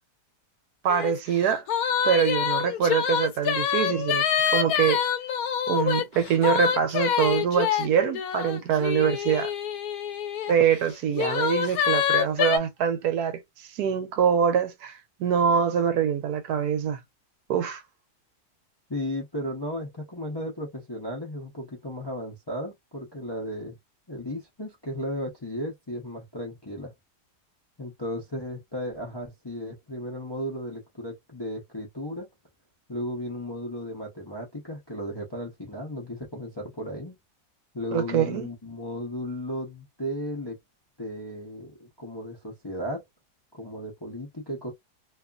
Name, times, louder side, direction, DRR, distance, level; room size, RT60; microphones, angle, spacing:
voice 1, 0.8-1.6 2.0-4.2 4.5-5.0 5.7-9.5 10.5-13.4 13.7-14.9 15.2-17.0 17.5-17.8 37.9-38.5, right 8 dB, 75° right, 1.1 m, -24 dB
sound 1, 0.9-1.1 1.4-10.5 11.1-12.6, left 8 dB, 70° left, 1.0 m, -26 dB
voice 2, 18.9-23.8 24.1-26.9 27.8-32.3 32.9-37.1 37.7-40.6 41.0-43.0 43.5-44.7, equal, 35° left, 0.4 m, -35 dB
2.8 x 2.4 x 2.4 m
omnidirectional pair, 1.8 m